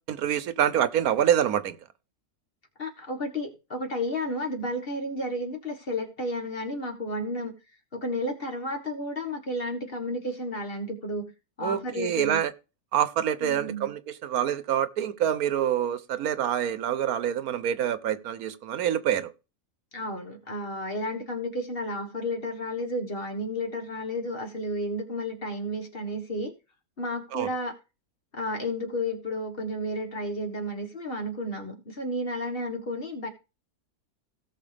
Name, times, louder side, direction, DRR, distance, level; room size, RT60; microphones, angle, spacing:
voice 1, 0.1-1.8 11.6-12.5 12.9-19.3 27.3-27.5, right 10 dB, 80° right, 1.3 m, -26 dB
voice 2, 2.8-7.5 7.9-11.3 11.6-12.4 13.4-13.9 19.9-26.5 27.0-27.8 28.3-33.3, left 1 dB, 40° left, 1.7 m, -32 dB
17.5 x 6.3 x 3.4 m
omnidirectional pair, 1.5 m